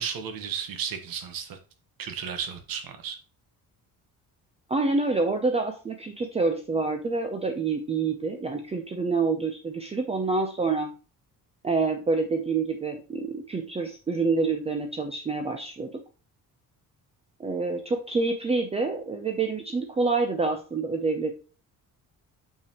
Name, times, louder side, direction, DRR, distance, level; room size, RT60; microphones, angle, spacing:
voice 1, 0.0-1.6 2.0-3.2, right 7 dB, 80° right, 1.3 m, -34 dB
voice 2, 4.7-10.9 11.6-15.9 17.4-21.3, right 3 dB, 20° right, 0.6 m, -27 dB
6.6 x 5.9 x 2.9 m
cardioid pair, 170°, 34 cm